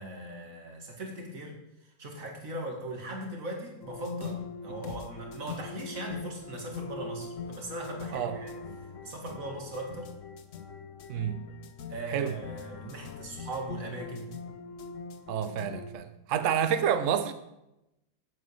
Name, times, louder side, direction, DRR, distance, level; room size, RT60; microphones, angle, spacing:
voice 1, 0.0-1.6 2.0-8.5 9.0-10.1 11.9-14.3, right 1 dB, 40° right, 2.6 m, -39 dB
sound 1, 3.8-15.9, left 5 dB, 50° left, 1.0 m, -42 dB
voice 2, 11.1-11.5 12.1-12.4 15.3-17.3, right 8 dB, 70° right, 0.7 m, -29 dB
9.0 x 8.6 x 8.0 m
omnidirectional pair, 2.2 m